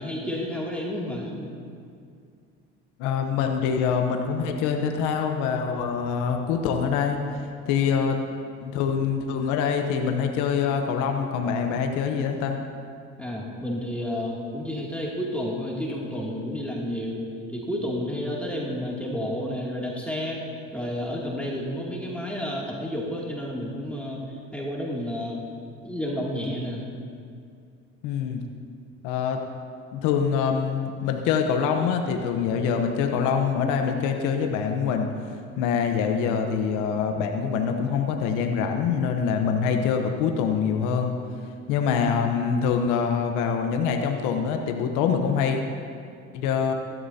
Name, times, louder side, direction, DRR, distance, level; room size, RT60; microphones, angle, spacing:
voice 1, 0.0-1.5 13.2-17.2 17.5-20.4 20.7-24.3 24.5-25.4 25.8-26.8, left 1 dB, 5° left, -4 dB, 2.5 m, -31 dB
voice 2, 3.0-8.2 8.6-12.6 28.0-28.4 29.0-29.4 29.9-35.1 35.6-41.1 41.7-45.6 46.3-46.7, left 6 dB, 80° left, 4 dB, 1.0 m, -25 dB
16.5 x 12.0 x 2.8 m, 2.4 s
supercardioid pair, 75°, 30 cm